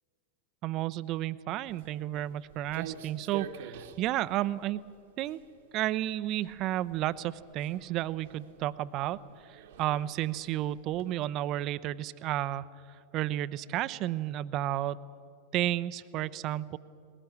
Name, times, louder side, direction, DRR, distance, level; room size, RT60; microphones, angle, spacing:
voice 1, 0.6-4.8 5.2-5.4 5.7-12.6 13.1-15.0 15.5-16.8, right 14 dB, 35° right, 17 dB, 0.6 m, -32 dB
Walk footsteps, 1.6-11.1, right 8 dB, 55° right, 1.2 m, -48 dB
20.5 x 18.5 x 8.7 m, 2.5 s
figure-of-eight pair, 90°, 0 cm